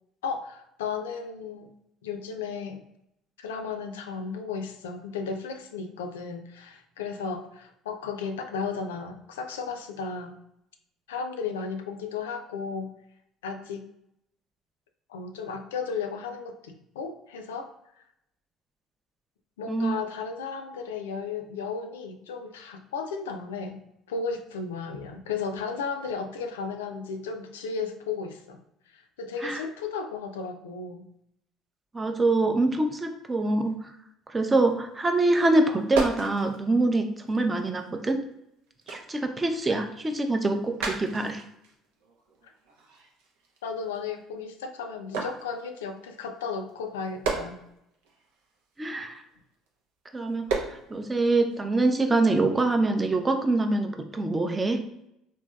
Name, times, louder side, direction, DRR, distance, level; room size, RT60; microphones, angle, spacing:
voice 1, 0.2-1.7 2.0-2.8 3.4-10.4 11.1-13.0 13.4-13.9 15.1-17.7 19.6-28.6 28.9-31.1 43.6-47.6, left 5 dB, 90° left, 6 dB, 0.3 m, -34 dB
voice 2, 31.9-33.7 34.3-38.2 38.9-41.4 48.8-49.2 50.1-54.8, right 2 dB, 25° right, 6 dB, 0.5 m, -25 dB
sound 1, 34.4-34.8 35.1-38.3 38.7-44.5 45.1-49.8 50.3-50.9 51.4-51.6, right 4 dB, 80° right, 0.6 m, -36 dB
3.0 x 2.6 x 2.3 m, 0.81 s
hypercardioid pair, 70°, 0 cm